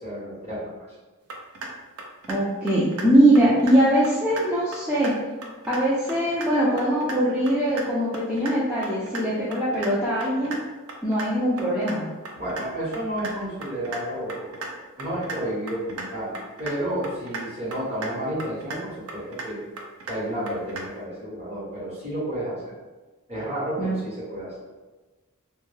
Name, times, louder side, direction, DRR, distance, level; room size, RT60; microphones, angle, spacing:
voice 1, 0.0-0.7 12.3-19.6 20.0-22.7 23.3-24.5, right 1 dB, 30° right, -8 dB, 0.9 m, -31 dB
sound 1, 1.3-1.7 2.0-2.4 2.7-3.1 3.4-3.7 4.0-4.4 4.7-5.1 5.4-5.8 6.1-6.5 6.8-7.2 7.5-7.8 8.1-8.5 8.8-9.2 9.5-9.9 10.2-10.6 10.9-11.3 11.6-12.0 12.3-12.6 12.9-13.3 13.6-14.0 14.3-14.7 15.0-15.4 15.7-16.1 16.3-16.8 17.0-17.4 17.7-18.1 18.4-18.8 19.1-19.5 19.8-20.2 20.5-20.8, right 3 dB, 70° right, 0.4 m, -35 dB
voice 2, 2.3-5.1 5.7-10.6 11.0-12.1 23.8-23.9, right 1 dB, 5° right, -10 dB, 0.4 m, -21 dB
2.2 x 2.1 x 3.1 m, 1.2 s
head